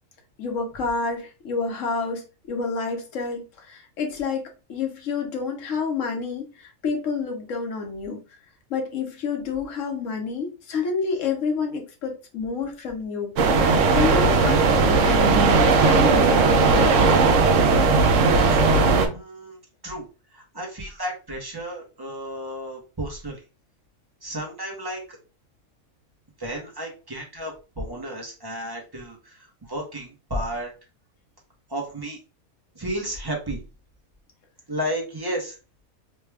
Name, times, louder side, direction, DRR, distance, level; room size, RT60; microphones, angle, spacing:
voice 1, 0.4-4.4 4.7-8.2 8.7-14.6 14.9-16.3 16.6-17.2, left 5 dB, 65° left, 1.1 m, -29 dB
sound 1, 13.4-19.1, right 4 dB, 70° right, 0.9 m, -17 dB
voice 2, 19.1-20.0 20.3-23.4 24.2-25.0 26.4-30.7 31.7-32.2 32.7-33.6 34.7-35.6, equal, 20° right, 0.7 m, -32 dB
3.2 x 2.2 x 3.2 m
omnidirectional pair, 1.5 m